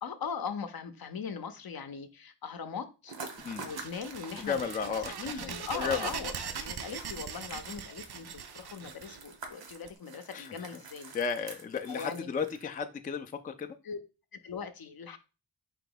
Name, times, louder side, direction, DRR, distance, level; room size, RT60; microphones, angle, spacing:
voice 1, 0.0-3.1 3.6-11.1 11.9-12.3 13.8-14.0 14.3-15.2, left 6 dB, 55° left, 9 dB, 0.6 m, -40 dB
sound 1, 3.1-12.8, right 4 dB, 85° right, 1.0 m, -48 dB
sound 2, 3.4-9.9, right 7 dB, 65° right, 0.6 m, -41 dB
voice 2, 4.4-6.4 10.3-10.7 11.1-13.8, left 6 dB, 20° left, 6 dB, 0.3 m, -34 dB
4.5 x 2.9 x 3.9 m, 0.32 s
wide cardioid pair, 90°, 43 cm